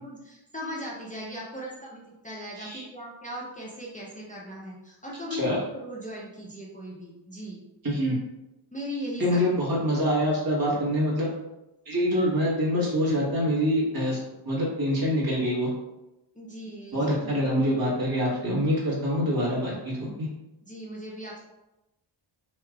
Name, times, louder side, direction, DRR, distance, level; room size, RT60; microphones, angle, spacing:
voice 1, 0.0-7.6 8.7-9.5 16.3-17.8 20.6-21.4, equal, 15° left, -5 dB, 0.6 m, -38 dB
voice 2, 7.8-8.2 9.2-11.3 11.8-14.2 14.4-15.7 16.9-20.3, equal, 45° right, -6 dB, 1.4 m, -25 dB
3.2 x 2.8 x 2.3 m, 0.96 s
wide cardioid pair, 65°, 50 cm